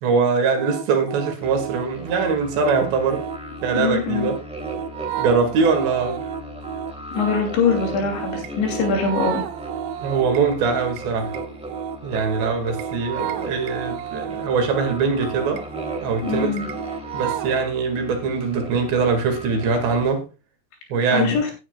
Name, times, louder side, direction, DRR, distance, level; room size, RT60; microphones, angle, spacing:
voice 1, 0.0-3.2 3.6-4.4 5.2-6.2 10.0-11.3 12.0-15.6 16.0-16.5 17.1-20.2 20.9-21.4, right 5 dB, 70° right, 4 dB, 4.2 m, -22 dB
sound 1, 0.6-17.6, right 9 dB, 85° right, 3.1 m, -32 dB
sound 2, 1.4-20.1, equal, ahead, 1.6 m, -37 dB
voice 2, 3.7-4.3 7.1-9.4 16.2-16.6 21.1-21.5, left 5 dB, 75° left, 3 dB, 5.1 m, -23 dB
17.5 x 9.8 x 2.3 m, 0.28 s
omnidirectional pair, 5.2 m